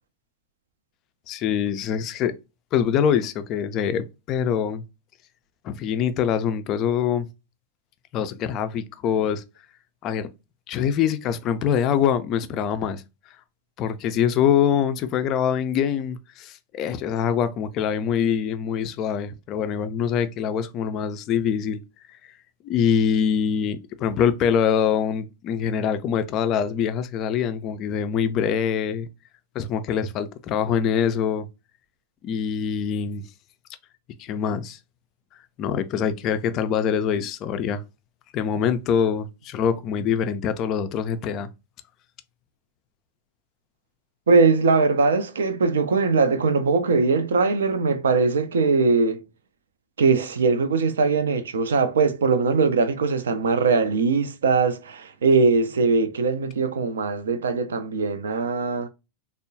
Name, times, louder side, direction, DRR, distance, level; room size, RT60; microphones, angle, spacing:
voice 1, 1.3-2.3 2.7-4.8 5.6-7.3 8.1-9.4 10.0-10.3 10.7-13.0 13.8-21.8 22.6-29.1 29.5-31.5 32.2-33.2 34.2-34.8 35.6-37.8 38.3-41.5, left 8 dB, 35° left, 0.3 m, -24 dB
voice 2, 44.3-49.2 50.0-58.9, right 4 dB, 65° right, 0.4 m, -21 dB
3.5 x 2.0 x 2.6 m
figure-of-eight pair, 90°, 0 cm